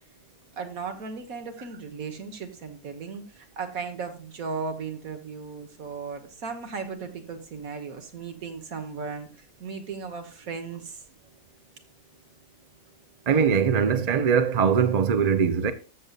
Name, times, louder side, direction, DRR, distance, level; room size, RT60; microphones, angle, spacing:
voice 1, 0.6-9.3 9.6-11.0, right 5 dB, 70° right, 1.7 m, -36 dB
voice 2, 13.3-15.7, right 6 dB, 40° right, 0.6 m, -21 dB
14.0 x 6.7 x 2.4 m
omnidirectional pair, 1.5 m